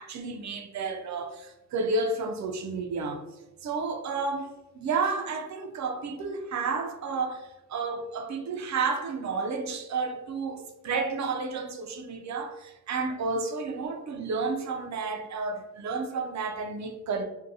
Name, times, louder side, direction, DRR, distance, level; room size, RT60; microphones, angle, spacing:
voice 1, 0.0-3.2 3.6-17.2, right 4 dB, 50° right, 0.4 m, -31 dB
2.6 x 2.2 x 2.6 m
cardioid pair, 90°, 37 cm